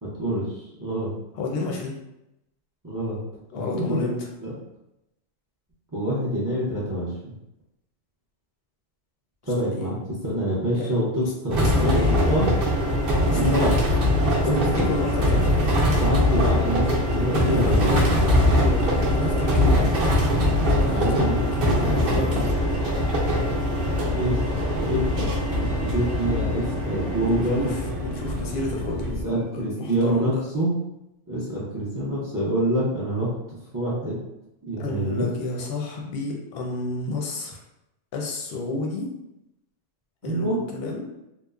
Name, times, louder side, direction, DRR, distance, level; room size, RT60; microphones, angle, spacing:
voice 1, 0.0-0.5 0.8-1.1 2.8-3.2 3.5-4.0 4.4-4.5 5.9-7.1 9.4-10.0 10.2-12.5 13.3-13.7 14.4-14.9 15.9-18.1 21.0-21.4 24.1-24.4 24.8-27.8 29.2-30.7 31.3-33.3 33.7-34.2 34.7-35.3 40.2-40.6, right 1 dB, 25° right, -7 dB, 0.4 m, -26 dB
voice 2, 1.3-1.9 3.5-4.2 9.7-10.0 10.7-10.9 11.2-12.3 13.2-13.8 14.5-15.7 17.2-19.9 20.8-22.5 27.2-30.4 34.8-37.6 38.1-39.1 40.2-41.1, left 3 dB, 60° left, 0 dB, 0.7 m, -31 dB
sound 1, 11.5-29.2, left 1 dB, 60° right, 0.8 m, -22 dB
3.0 x 2.0 x 2.3 m, 0.88 s
omnidirectional pair, 1.2 m